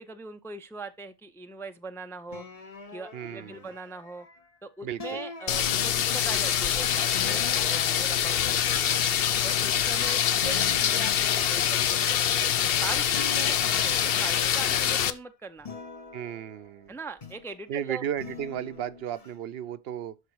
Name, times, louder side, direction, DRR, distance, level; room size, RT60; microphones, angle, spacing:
voice 1, 0.0-2.4 2.9-4.3 4.6-9.0 9.4-15.7 16.9-18.0, right 3 dB, 5° left, 0.4 m, -41 dB
sound 1, 2.3-4.5 5.0-6.3 7.1-10.1 10.4-12.8 13.1-15.1 15.6-17.6 18.2-19.3, left 4 dB, 35° left, 1.0 m, -44 dB
voice 2, 3.1-3.7 4.8-5.2 16.1-17.0 17.7-20.2, right 10 dB, 70° right, 0.8 m, -34 dB
sound 2, 5.5-15.1, left 9 dB, 65° left, 0.8 m, -25 dB
12.5 x 4.1 x 4.6 m
omnidirectional pair, 1.1 m